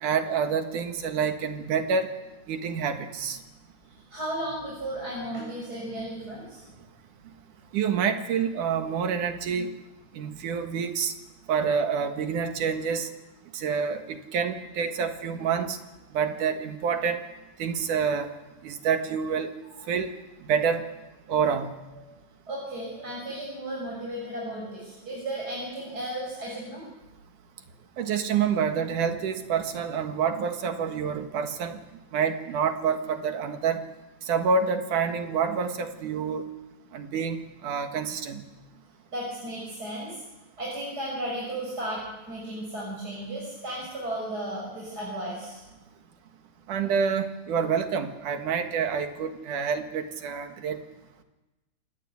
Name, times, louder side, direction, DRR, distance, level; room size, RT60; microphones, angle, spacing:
voice 1, 0.0-2.1 2.5-3.4 7.7-9.7 10.1-11.1 11.5-13.1 13.5-15.8 16.1-17.2 17.6-18.3 18.6-19.5 19.9-20.1 20.5-20.9 21.3-21.7 28.0-31.8 32.1-33.8 34.3-36.5 36.9-38.4 46.7-50.8, right 6 dB, 65° right, 6 dB, 3.1 m, -27 dB
voice 2, 4.1-6.6 21.9-22.0 22.5-26.8 39.1-40.2 40.6-45.6, right 1 dB, 25° right, -3 dB, 7.3 m, -34 dB
27.5 x 20.0 x 8.3 m, 1.1 s
omnidirectional pair, 3.9 m